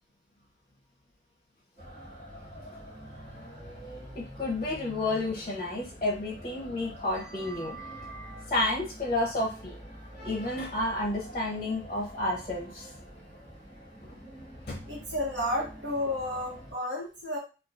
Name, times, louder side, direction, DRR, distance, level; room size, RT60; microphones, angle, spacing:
sound 1, 1.8-16.7, equal, 45° right, 1.7 m, -46 dB
voice 1, 4.1-9.7 10.2-12.9 14.0-14.1 14.7-14.8, left 2 dB, 30° left, -2 dB, 0.7 m, -31 dB
voice 2, 14.9-17.4, left 1 dB, 60° right, -4 dB, 1.2 m, -32 dB
3.6 x 2.3 x 2.4 m, 0.33 s
head